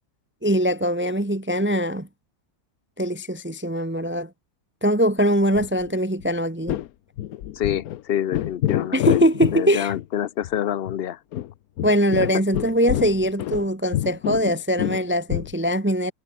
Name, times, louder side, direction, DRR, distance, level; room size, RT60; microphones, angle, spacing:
voice 1, 0.4-2.1 3.0-4.3 4.8-6.8 8.9-9.9 11.8-16.1, equal, 10° right, 1.1 m, -22 dB
sound 1, 5.5-5.9 6.2-6.3 6.7-6.9 7.2-8.0 8.3-9.6 9.9-10.0 10.4-10.5 10.9-11.0 11.3-13.7 13.9-15.5, left 13 dB, 75° left, 1.2 m, -27 dB
voice 2, 7.6-9.2 9.5-11.2 12.3-12.4, left 10 dB, 60° left, 0.6 m, -27 dB
omnidirectional pair, 1.6 m